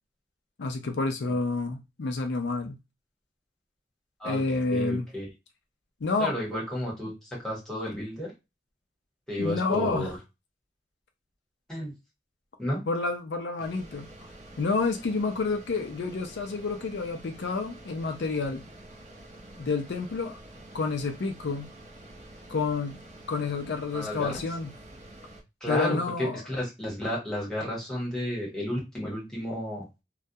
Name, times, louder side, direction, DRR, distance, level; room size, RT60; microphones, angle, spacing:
voice 1, 0.6-2.8 4.2-5.1 6.0-6.3 9.4-10.1 12.9-14.1 14.6-18.6 19.6-20.4 20.7-21.7 22.5-23.0 23.3-24.7 25.7-26.4, left 3 dB, 75° left, 0.4 m, -29 dB
voice 2, 4.7-5.3 6.2-8.3 9.3-10.2 11.7-11.9 12.6-12.8 23.9-24.4 25.6-29.9, equal, 5° left, 1.1 m, -32 dB
sound 1, 13.6-25.4, right 1 dB, 40° right, 0.6 m, -48 dB
2.3 x 2.0 x 2.7 m
head